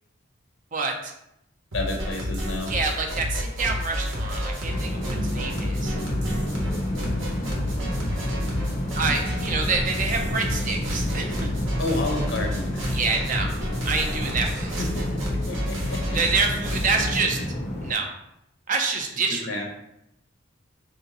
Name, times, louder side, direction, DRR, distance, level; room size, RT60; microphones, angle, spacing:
voice 1, 0.7-1.1 2.7-6.0 8.9-11.5 12.9-13.5 13.9-14.7 16.1-17.4 17.8-18.1 18.7-19.4, right 4 dB, 40° right, 3 dB, 0.5 m, -27 dB
voice 2, 1.7-2.7 9.0-9.1 11.8-12.9 14.8-16.0 19.4-19.7, left 2 dB, 70° left, 1 dB, 0.8 m, -30 dB
sound 1, 1.7-17.2, left 1 dB, 70° right, 1.2 m, -30 dB
sound 2, 4.7-17.9, equal, 35° left, 0.6 m, -30 dB
3.3 x 2.9 x 3.9 m, 0.82 s
head